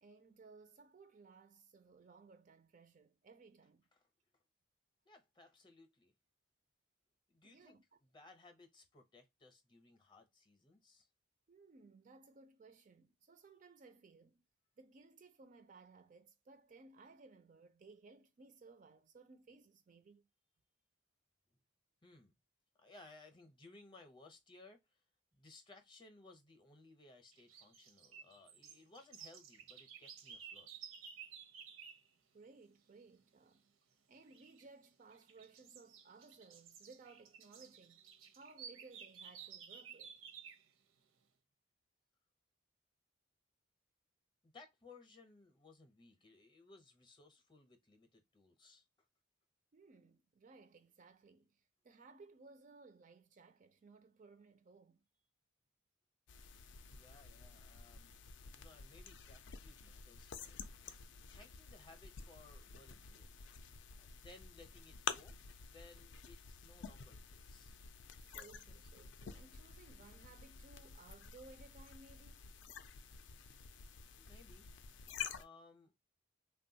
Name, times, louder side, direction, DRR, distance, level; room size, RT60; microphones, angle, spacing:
voice 1, 0.0-3.9 7.4-7.8 11.5-14.4 14.8-20.3 32.3-33.7 34.1-38.0 38.3-40.2 49.7-55.0 68.2-72.4, right 3 dB, 40° right, 0.3 m, -60 dB
voice 2, 5.1-6.1 7.3-11.1 22.0-22.4 22.8-25.0 25.3-30.7 44.4-48.9 56.9-60.6 61.3-63.4 64.0-67.8 74.1-74.7 75.3-75.9, left 3 dB, 25° left, 0.6 m, -61 dB
sound 1, 27.3-32.1 34.3-34.6 35.1-40.7, right 7 dB, 80° right, 0.6 m, -54 dB
sound 2, 56.3-75.4, left 6 dB, 60° left, 0.4 m, -50 dB
3.4 x 2.2 x 2.6 m
head